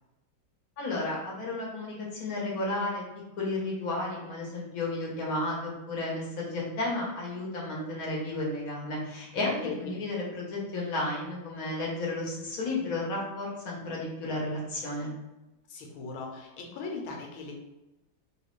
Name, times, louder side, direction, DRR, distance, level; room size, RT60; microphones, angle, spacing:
voice 1, 0.8-3.0 3.4-15.1, left 2 dB, 50° left, -4 dB, 1.3 m, -33 dB
voice 2, 9.6-9.9 15.7-17.6, left 3 dB, 90° left, 1 dB, 1.6 m, -39 dB
3.3 x 3.1 x 3.1 m, 1.0 s
omnidirectional pair, 2.2 m